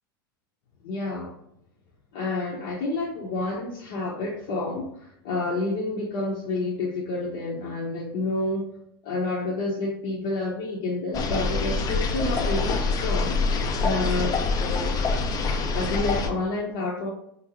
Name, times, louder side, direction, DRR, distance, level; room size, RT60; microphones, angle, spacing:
voice 1, 0.8-1.4 2.1-8.7 9.0-13.4 13.8-15.0 15.7-17.1, left 2 dB, 60° left, -4 dB, 0.8 m, -29 dB
sound 1, 11.1-16.3, left 4 dB, 30° left, 0.5 m, -25 dB
3.8 x 2.6 x 2.9 m, 0.74 s
hypercardioid pair, 110°, 12 cm